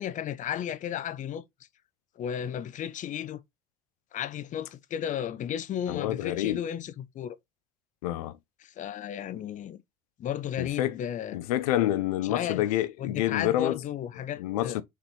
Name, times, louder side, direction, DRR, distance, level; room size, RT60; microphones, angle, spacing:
voice 1, 0.0-1.4 2.2-3.4 4.1-7.4 8.6-9.8 10.2-11.4 12.2-12.6 13.0-14.8, left 9 dB, 45° left, 0.6 m, -34 dB
voice 2, 5.9-6.6 8.0-8.4 10.6-11.0 11.3-13.8 14.4-14.8, left 14 dB, 85° left, 0.5 m, -28 dB
4.2 x 3.8 x 3.1 m
hypercardioid pair, 75°, 19 cm